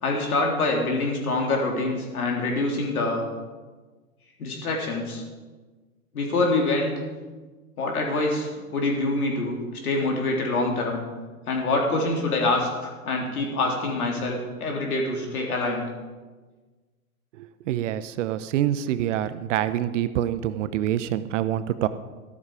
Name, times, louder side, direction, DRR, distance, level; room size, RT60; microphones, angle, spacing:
voice 1, 0.0-3.2 4.4-5.2 6.1-6.9 7.8-11.0 11.5-15.9, left 2 dB, 75° left, 0 dB, 3.7 m, -25 dB
voice 2, 17.4-21.9, right 12 dB, 55° right, 13 dB, 0.9 m, -26 dB
13.5 x 12.0 x 4.9 m, 1.3 s
hypercardioid pair, 105°, 44 cm